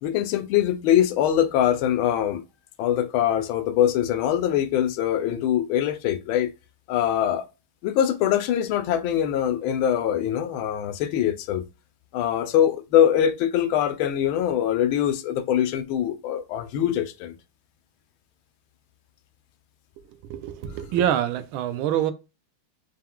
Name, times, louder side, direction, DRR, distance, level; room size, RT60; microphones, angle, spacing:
voice 1, 0.0-2.4 2.8-6.5 6.9-7.4 7.8-11.6 12.1-17.3, left 10 dB, 85° left, 1.4 m, -23 dB
voice 2, 20.0-22.1, right 10 dB, 85° right, 1.4 m, -26 dB
4.5 x 2.2 x 3.6 m
omnidirectional pair, 2.2 m